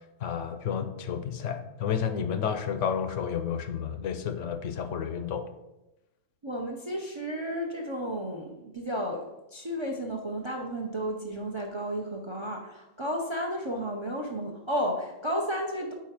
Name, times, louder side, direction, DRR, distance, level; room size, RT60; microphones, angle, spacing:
voice 1, 0.2-5.5, left 7 dB, 70° left, 8 dB, 0.9 m, -31 dB
voice 2, 6.4-15.9, equal, 35° right, 1 dB, 0.4 m, -33 dB
4.7 x 4.4 x 5.8 m, 0.97 s
omnidirectional pair, 1.4 m